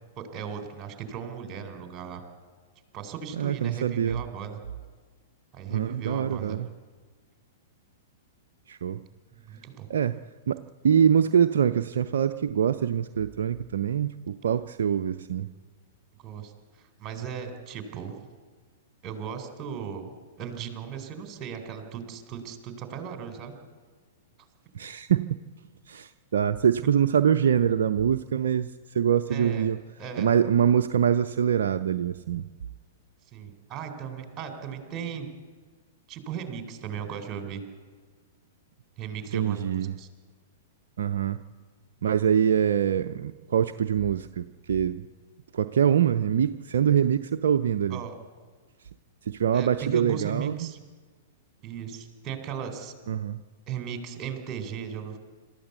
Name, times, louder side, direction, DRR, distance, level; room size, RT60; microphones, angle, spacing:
voice 1, 0.2-2.2 2.9-4.6 5.5-6.6 9.5-9.9 16.2-18.2 19.0-23.5 29.3-29.7 30.0-30.3 33.3-35.3 36.1-37.6 39.0-40.1 47.9-48.1 49.5-50.8 51.6-52.9 53.7-55.2, right 7 dB, 30° right, 6 dB, 4.0 m, -37 dB
voice 2, 3.3-4.2 5.7-6.7 8.7-9.1 9.9-15.5 24.7-25.4 25.9-29.8 30.2-32.5 39.3-40.0 41.0-41.4 42.0-45.0 45.5-48.0 49.2-50.7 53.1-53.4, right 8 dB, 65° right, 8 dB, 0.6 m, -24 dB
26.0 x 13.5 x 8.3 m, 1.5 s
figure-of-eight pair, 105°, 0 cm